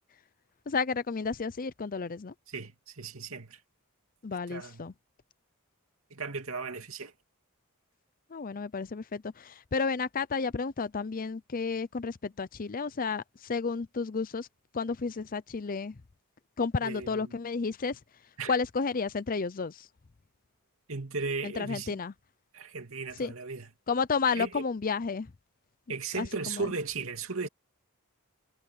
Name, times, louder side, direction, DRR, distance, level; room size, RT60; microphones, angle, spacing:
voice 1, 0.7-2.3 4.2-4.9 8.3-14.5 14.7-16.0 16.6-18.0 18.5-19.9 21.4-22.1 23.2-23.3 23.9-25.3 26.2-26.7, left 5 dB, 40° left, 0.6 m, -32 dB
voice 2, 2.5-3.6 4.5-4.9 6.1-7.1 16.8-17.4 18.4-18.5 20.9-21.9 22.5-23.7 24.3-24.6 25.9-27.5, right 4 dB, 65° right, 2.8 m, -36 dB
head